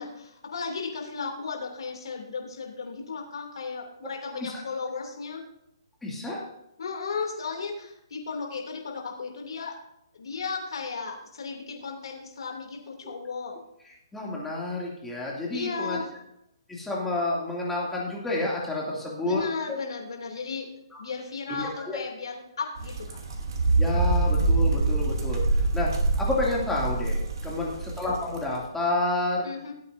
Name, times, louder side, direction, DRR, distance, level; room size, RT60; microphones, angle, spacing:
voice 1, 0.0-5.5 6.8-9.8 10.1-13.6 15.5-16.1 19.2-20.7 21.0-23.2 27.4-27.7 29.4-29.7, left 5 dB, 70° left, 1 dB, 2.8 m, -35 dB
voice 2, 6.0-6.4 13.0-13.1 14.1-16.0 16.7-19.4 19.7-19.8 21.5-22.0 23.8-25.4 25.7-25.9 26.2-29.5, left 2 dB, 5° left, -4 dB, 2.6 m, -29 dB
sound 1, 22.8-28.4, right 3 dB, 55° right, 2.7 m, -25 dB
17.5 x 8.3 x 2.7 m, 0.82 s
hypercardioid pair, 155°, 3 cm